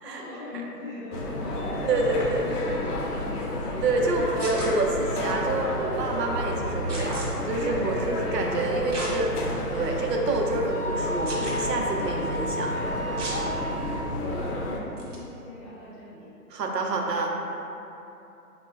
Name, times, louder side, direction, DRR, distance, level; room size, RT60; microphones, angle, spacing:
voice 1, 0.0-3.5 8.7-9.3 13.6-16.3, left 1 dB, 40° left, -8 dB, 0.7 m, -40 dB
sound 1, 1.1-14.8, left 1 dB, 75° left, 0.6 m, -31 dB
voice 2, 1.9-2.4 3.8-9.3 9.7-12.7 16.5-17.3, right 3 dB, 90° right, 0 dB, 0.6 m, -27 dB
sound 2, 4.4-4.7 6.9-7.3 8.9-9.1 9.7-9.8 11.2-11.6 13.2-13.4 15.0-15.2, right 2 dB, 50° right, 0.7 m, -35 dB
Wind instrument woodwind instrument, 9.7-14.0, equal, 20° right, 0.6 m, -34 dB
4.2 x 2.1 x 2.3 m, 2.9 s
hypercardioid pair, 165°, 48 cm